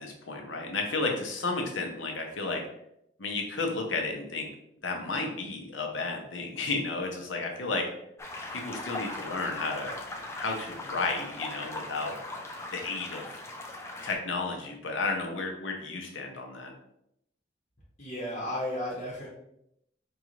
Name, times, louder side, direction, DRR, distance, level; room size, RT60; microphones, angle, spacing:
voice 1, 0.0-2.6 3.2-4.5 4.8-7.9 8.5-9.9 10.3-12.2 12.7-13.2 14.0-16.7, left 3 dB, 90° left, 2 dB, 0.8 m, -32 dB
sound 1, 8.2-14.2, left 2 dB, 15° left, 0.4 m, -39 dB
voice 2, 18.0-19.3, left 1 dB, 40° left, -6 dB, 0.9 m, -33 dB
4.6 x 2.6 x 3.1 m, 0.78 s
head